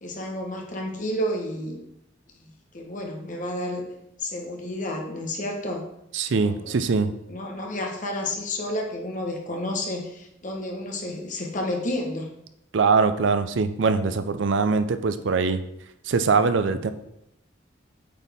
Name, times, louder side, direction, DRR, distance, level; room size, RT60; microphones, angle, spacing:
voice 1, 0.0-1.8 2.7-3.8 4.2-5.9 6.4-6.8 7.3-12.3, left 1 dB, 40° left, 1 dB, 1.1 m, -30 dB
voice 2, 6.1-7.1 12.7-15.6 16.0-16.9, right 4 dB, 75° right, 11 dB, 0.5 m, -22 dB
8.3 x 4.1 x 3.5 m, 0.81 s
head